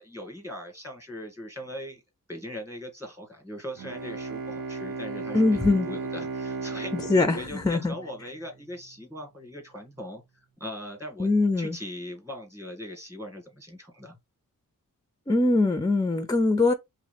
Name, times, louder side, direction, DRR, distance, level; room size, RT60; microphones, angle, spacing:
voice 1, 0.0-2.0 2.3-5.4 5.9-7.0 7.3-10.2 10.6-11.3 11.6-14.2, left 1 dB, 10° right, 1.8 m, -40 dB
Bowed string instrument, 3.8-8.7, right 4 dB, 85° right, 1.0 m, -36 dB
voice 2, 5.3-5.9 7.1-7.9 11.2-11.8 15.3-16.7, left 2 dB, 10° left, 0.4 m, -22 dB
3.6 x 3.1 x 3.4 m
wide cardioid pair, 100°, 34 cm